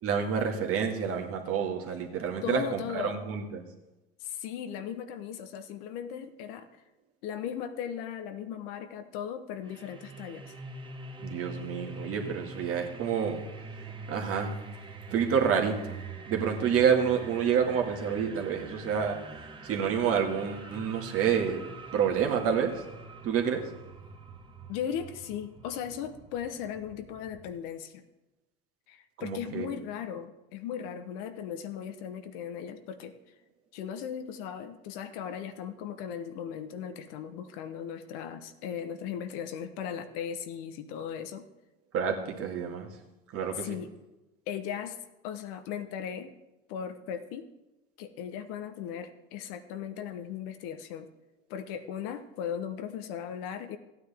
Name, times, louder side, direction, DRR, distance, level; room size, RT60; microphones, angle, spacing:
voice 1, 0.0-3.6 11.2-13.4 14.1-14.5 15.1-16.0 16.3-19.2 19.6-21.7 21.9-22.7 23.2-23.6 29.2-29.7 41.9-42.9 43.3-43.8, right 7 dB, 45° right, 3 dB, 1.8 m, -28 dB
voice 2, 2.4-3.2 4.2-6.7 7.2-10.5 24.7-28.0 28.9-33.2 33.7-41.5 43.5-43.9 44.5-45.0 45.2-46.3 46.7-47.5 48.0-51.1 51.5-53.8, left 8 dB, 65° left, 9 dB, 1.0 m, -37 dB
sound 1, 9.6-27.6, right 3 dB, 15° right, 1.3 m, -45 dB
15.0 x 9.3 x 3.5 m, 1.0 s
hypercardioid pair, 80°, 31 cm